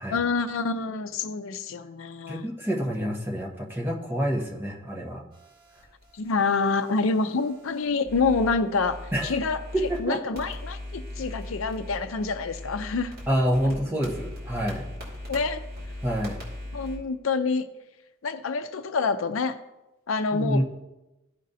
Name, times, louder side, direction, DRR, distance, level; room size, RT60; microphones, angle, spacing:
voice 1, 0.1-2.5 6.1-9.6 10.0-13.1 15.3-15.6 16.7-17.6 18.2-19.6 20.1-20.6, left 4 dB, 75° left, 10 dB, 0.5 m, -27 dB
voice 2, 2.3-5.2 9.1-9.4 9.7-10.2 13.3-14.9 16.0-16.4 20.3-20.6, equal, 10° right, -2 dB, 1.2 m, -27 dB
sound 1, 5.3-10.0 10.3-17.0, left 1 dB, 45° right, 2.6 m, -40 dB
15.0 x 5.2 x 2.7 m, 0.99 s
head